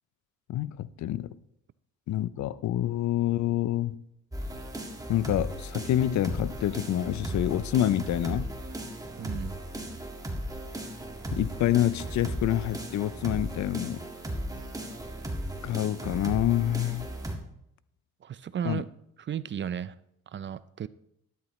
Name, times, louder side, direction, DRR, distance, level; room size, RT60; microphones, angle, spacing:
voice 1, 0.5-1.3 2.1-4.0 5.1-8.5 11.3-14.0 15.6-17.1 18.7-18.8, left 12 dB, 70° left, 0.6 m, -27 dB
sound 1, 4.3-17.4, right 1 dB, 10° right, 1.9 m, -36 dB
voice 2, 9.2-9.6 18.2-18.9 19.2-19.9 20.3-20.9, right 9 dB, 40° right, 0.5 m, -34 dB
12.0 x 11.0 x 3.1 m
cardioid pair, 90°, 30 cm